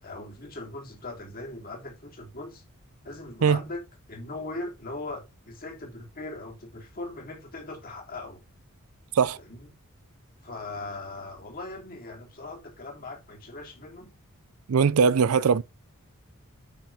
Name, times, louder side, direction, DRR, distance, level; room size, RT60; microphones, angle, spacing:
voice 1, 0.0-2.6 3.0-3.8 4.1-8.4 9.4-9.7 10.4-14.1, left 2 dB, 40° left, 3.2 m, -39 dB
voice 2, 14.7-15.6, right 6 dB, 70° right, 0.5 m, -20 dB
8.6 x 6.0 x 3.4 m
head